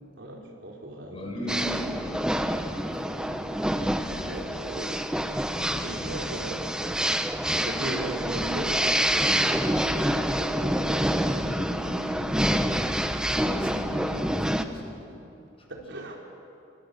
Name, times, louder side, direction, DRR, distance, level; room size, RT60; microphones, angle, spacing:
voice 1, 0.2-1.8 4.2-5.1 5.8-6.6 7.5-11.7 15.7-16.2, right 1 dB, 70° right, 0 dB, 4.0 m, -38 dB
voice 2, 1.1-3.5 4.1-4.4 5.4-6.5 6.8-6.9 11.2-12.8 13.3-15.2 15.7-15.8, equal, 30° left, 0 dB, 4.9 m, -39 dB
sound 1, 1.5-14.6, equal, 5° right, 0.8 m, -27 dB
27.5 x 24.0 x 6.8 m, 2.7 s
head